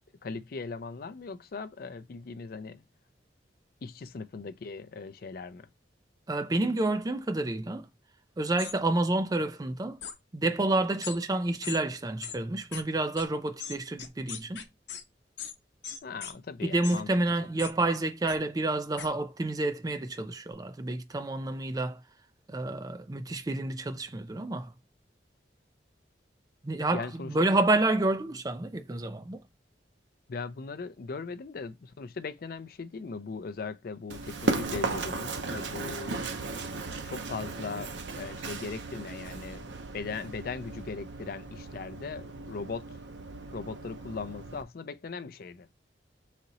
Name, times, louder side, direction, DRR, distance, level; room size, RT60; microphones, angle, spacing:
voice 1, 0.2-2.8 3.8-5.7 16.0-17.1 26.9-27.3 30.3-36.2 37.0-43.0 43.5-45.7, left 4 dB, 55° left, 0.4 m, -39 dB
voice 2, 6.3-7.9 8.4-10.0 10.3-14.7 16.6-22.0 22.5-24.7 26.6-29.4, right 2 dB, 20° right, 0.4 m, -29 dB
sound 1, 8.6-8.7 10.0-10.2 11.0-11.2 11.6-11.8 12.2-12.4 12.7-12.8 13.2-13.3 13.6-15.0 15.4-15.5 15.8-16.3 16.8-17.0 17.6-17.7 18.3-18.4 19.0-19.1, left 8 dB, 75° left, 0.8 m, -39 dB
Run, 34.1-44.6, right 3 dB, 80° right, 0.6 m, -36 dB
4.1 x 2.8 x 3.9 m
head